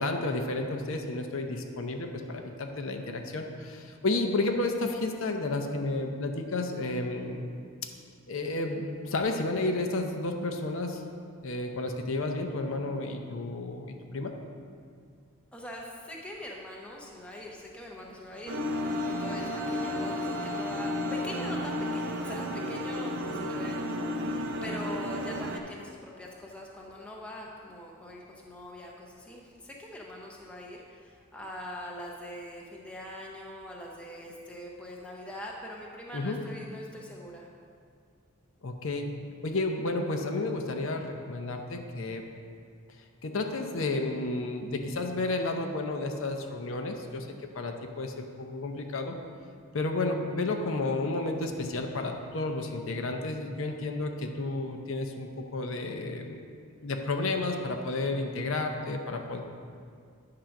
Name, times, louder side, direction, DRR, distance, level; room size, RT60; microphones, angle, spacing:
voice 1, 0.0-7.4 8.3-11.0 11.4-14.3 36.1-36.4 38.6-39.1 39.4-42.2 43.2-47.3 47.5-49.2 49.7-56.4 56.8-59.4, left 2 dB, 65° left, 4 dB, 0.7 m, -31 dB
voice 2, 15.5-18.5 19.2-37.5, left 1 dB, 5° left, -2 dB, 0.7 m, -43 dB
sound 1, 18.1-27.3, left 3 dB, 40° left, 1.2 m, -45 dB
sound 2, 18.5-25.6, left 1 dB, 55° right, 0.6 m, -32 dB
9.0 x 3.8 x 5.8 m, 2.2 s
head